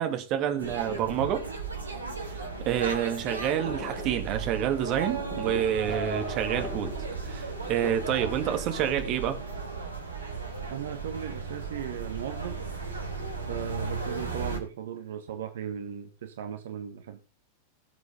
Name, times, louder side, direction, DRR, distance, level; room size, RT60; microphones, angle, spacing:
voice 1, 0.0-1.5 2.6-6.9 7.3-9.4, right 10 dB, 40° right, 2.5 m, -28 dB
sound 1, 0.6-14.6, right 4 dB, 75° right, 3.5 m, -35 dB
sound 2, 3.3-8.7, left 4 dB, 15° left, 5.0 m, -43 dB
voice 2, 10.7-12.6 13.5-17.2, right 9 dB, 60° right, 1.5 m, -37 dB
19.0 x 7.9 x 3.9 m
figure-of-eight pair, 90°, 0 cm